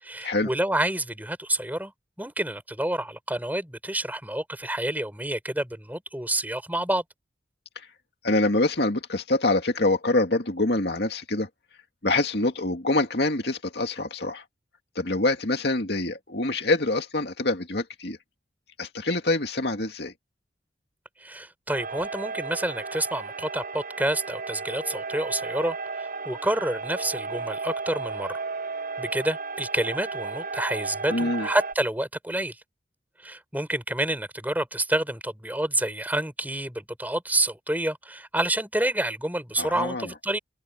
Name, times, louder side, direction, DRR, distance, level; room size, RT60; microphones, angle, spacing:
voice 1, 0.0-1.9 2.2-7.0 21.2-28.4 29.0-32.6 33.2-40.4, right 1 dB, 10° right, 6.1 m, -28 dB
voice 2, 8.2-11.5 12.0-14.4 15.0-18.2 18.8-20.1 31.1-31.5 39.6-40.1, left 2 dB, 60° left, 2.4 m, -25 dB
sound 1, 21.7-31.7, right 4 dB, 50° right, 7.4 m, -34 dB
open air
head